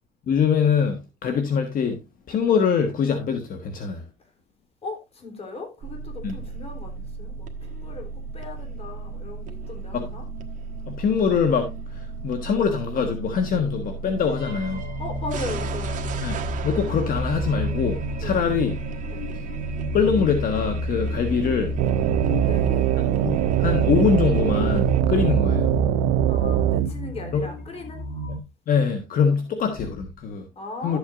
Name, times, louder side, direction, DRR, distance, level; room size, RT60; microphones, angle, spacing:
voice 1, 0.3-2.0 2.3-4.0 6.2-6.4 9.9-10.1 10.9-14.8 16.2-16.4 16.6-18.7 19.9-21.7 23.2-25.7 27.3-27.5 28.7-30.5 30.8-31.0, left 6 dB, 55° left, 1.4 m, -23 dB
voice 2, 4.8-10.3 15.0-16.2 18.2-18.5 19.1-19.2 22.4-22.8 25.2-25.3 26.3-28.0 29.3-29.4 30.6-31.0, left 3 dB, 35° left, 3.5 m, -38 dB
sound 1, 5.8-25.0, right 4 dB, 50° right, 1.4 m, -34 dB
sound 2, 14.4-28.4, left 1 dB, 80° left, 2.4 m, -31 dB
sound 3, 21.8-26.9, right 16 dB, 90° right, 0.4 m, -22 dB
12.0 x 8.1 x 2.5 m
cardioid pair, 110°, 17 cm